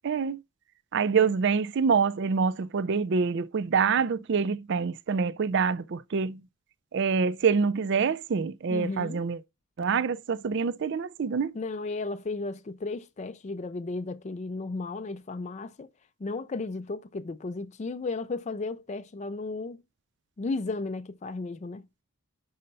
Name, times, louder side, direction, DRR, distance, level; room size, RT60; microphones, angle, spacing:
voice 1, 0.0-0.4 0.9-6.4 6.9-9.4 9.8-11.5, right 5 dB, 50° right, 0.4 m, -26 dB
voice 2, 8.7-9.2 11.5-15.9 16.2-19.8 20.4-21.8, left 3 dB, 30° left, 0.4 m, -34 dB
5.6 x 5.1 x 5.3 m
head